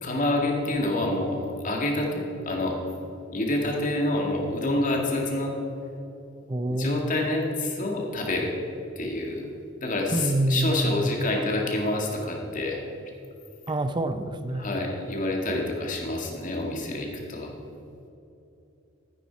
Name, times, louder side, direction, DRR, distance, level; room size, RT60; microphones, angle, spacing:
voice 1, 0.0-2.8 3.3-5.6 6.7-8.5 9.0-9.5 9.8-12.8 14.5-17.5, left 2 dB, 40° left, 0 dB, 2.0 m, -27 dB
voice 2, 6.5-7.0 10.1-11.0 13.7-14.7, right 1 dB, 20° right, 11 dB, 0.5 m, -26 dB
13.5 x 9.9 x 4.6 m, 2.9 s
head